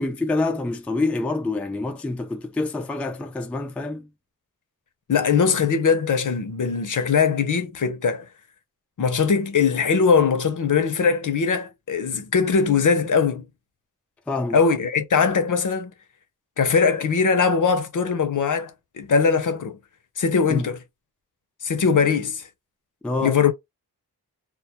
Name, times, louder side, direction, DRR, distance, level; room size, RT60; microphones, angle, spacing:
voice 1, 0.0-4.1 14.3-14.6 20.5-20.7 23.0-23.4, left 2 dB, 5° left, 0.3 m, -26 dB
voice 2, 5.1-8.3 9.0-13.4 14.5-15.9 16.6-19.8 20.2-20.8 21.6-22.5 23.2-23.5, left 5 dB, 55° left, 0.6 m, -21 dB
2.2 x 2.1 x 2.8 m
wide cardioid pair, 95°, 38 cm